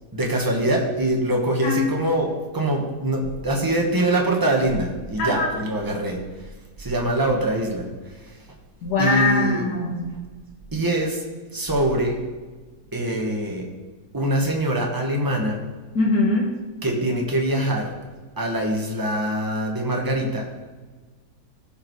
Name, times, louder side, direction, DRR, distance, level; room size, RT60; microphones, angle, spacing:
voice 1, 0.1-6.2 6.8-8.4 9.0-9.6 10.7-11.2 11.5-12.2 12.9-13.7 14.1-15.6 16.8-17.9 18.4-20.5, right 1 dB, 15° right, 0 dB, 1.4 m, -23 dB
voice 2, 5.2-5.5 8.8-10.0 16.0-16.5, left 2 dB, 75° left, -1 dB, 2.1 m, -22 dB
15.5 x 5.6 x 4.7 m, 1.3 s
omnidirectional pair, 1.8 m